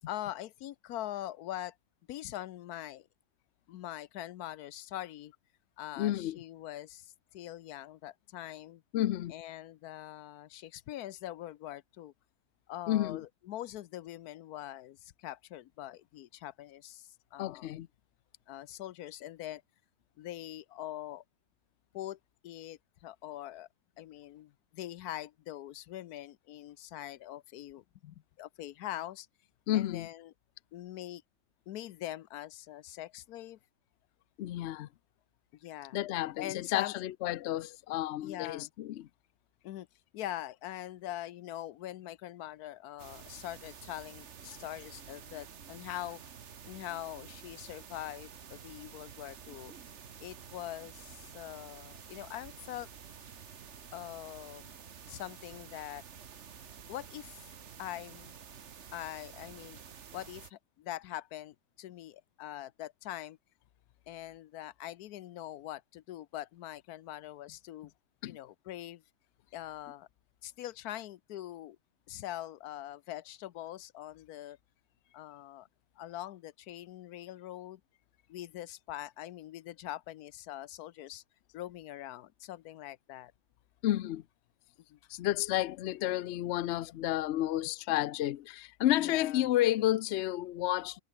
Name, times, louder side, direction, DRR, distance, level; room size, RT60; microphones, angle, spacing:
voice 1, 0.1-1.7 2.1-3.1 3.7-5.3 5.8-8.8 9.3-12.1 12.7-17.7 18.5-19.6 20.2-21.2 21.9-23.7 24.0-29.3 29.7-30.3 30.7-31.2 31.7-33.6 35.5-36.0 36.4-36.9 38.2-38.7 39.6-39.9 40.1-46.2 46.6-49.7 50.2-52.9 53.9-54.7 55.1-56.0 56.9-57.4 57.8-58.3 58.9-59.8 60.1-63.4 64.1-67.9 68.2-69.0 69.5-70.1 70.4-71.8 72.1-74.6 75.1-75.7 76.0-77.8 78.3-81.2 81.5-83.3 84.9-85.0 88.9-89.5, left 13 dB, 80° left, 1.2 m, -43 dB
voice 2, 6.0-6.4 8.9-9.3 12.9-13.2 17.4-17.9 29.7-30.1 34.4-34.9 35.9-39.1 68.2-68.4 83.8-84.2 85.1-91.0, left 14 dB, 65° left, 0.7 m, -31 dB
sound 1, 43.0-60.5, right 7 dB, 50° right, 1.4 m, -50 dB
omnidirectional pair, 1.6 m